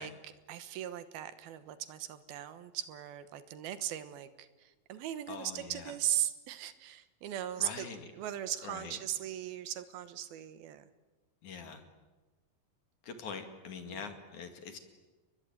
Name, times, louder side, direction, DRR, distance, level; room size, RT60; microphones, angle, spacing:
voice 1, 0.0-7.9 8.2-10.8 13.9-14.1, right 11 dB, 80° right, 12 dB, 3.1 m, -38 dB
voice 2, 5.3-5.9 7.6-8.1 8.6-9.0 11.4-11.8 13.0-14.8, left 6 dB, 55° left, 6 dB, 3.5 m, -44 dB
30.0 x 21.5 x 9.3 m, 1.2 s
omnidirectional pair, 4.3 m